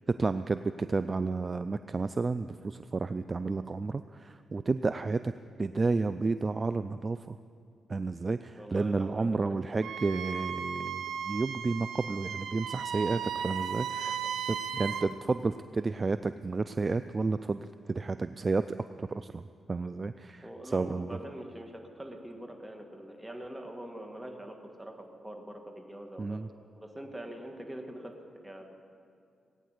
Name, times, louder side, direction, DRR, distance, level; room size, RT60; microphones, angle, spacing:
voice 1, 0.2-5.3 5.6-7.4 7.9-14.2 14.5-18.6 19.0-19.4 19.7-20.5 20.7-21.2 26.2-26.5, right 3 dB, 35° right, 11 dB, 0.4 m, -31 dB
voice 2, 8.5-9.7 14.1-14.4 20.4-26.4 26.8-28.7, right 1 dB, 10° right, 3 dB, 1.9 m, -44 dB
Wind instrument woodwind instrument, 9.8-15.1, right 7 dB, 80° right, 0.7 m, -36 dB
18.5 x 9.3 x 8.0 m, 2.4 s
cardioid pair, 90°, 0 cm